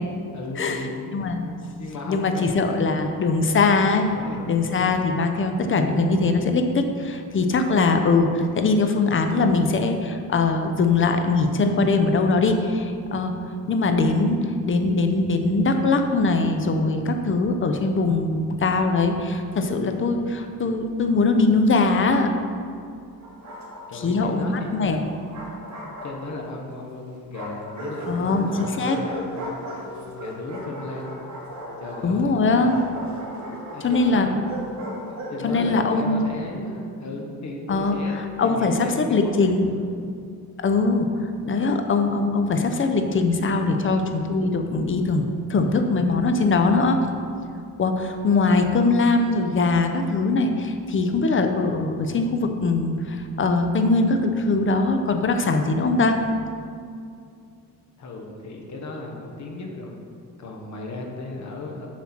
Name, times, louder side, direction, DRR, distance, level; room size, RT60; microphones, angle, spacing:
voice 1, 0.3-2.7 4.1-4.5 23.9-24.7 26.0-31.2 31.8-32.4 33.3-34.5 34.8-40.1 58.0-60.0 60.4-61.9, left 2 dB, 50° left, 1 dB, 1.2 m, -36 dB
voice 2, 1.1-1.4 2.1-4.1 4.5-13.4 13.7-22.3 23.9-25.1 28.1-29.0 32.0-32.9 33.8-34.3 35.4-36.3 37.7-38.0 38.4-39.7 40.6-41.1 41.4-45.2 45.5-47.0 47.8-56.2, left 3 dB, 35° left, 6 dB, 0.7 m, -21 dB
Bark, 23.2-24.1 25.0-26.6 27.3-35.4, equal, 50° right, 1.9 m, -37 dB
7.3 x 5.8 x 4.4 m, 2.4 s
cardioid pair, 115°, 36 cm